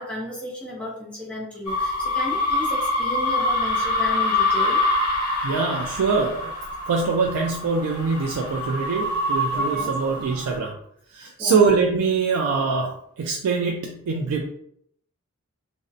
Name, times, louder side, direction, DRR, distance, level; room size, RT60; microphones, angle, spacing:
voice 1, 0.0-4.8 9.5-9.9 11.4-11.6, equal, 5° left, -6 dB, 0.4 m, -33 dB
sound 1, 1.7-10.5, left 2 dB, 80° left, 0.9 m, -25 dB
voice 2, 5.4-6.5 6.9-10.7 11.1-12.9 13.2-14.5, right 4 dB, 85° right, 1 dB, 0.3 m, -23 dB
2.5 x 2.0 x 2.5 m, 0.70 s
head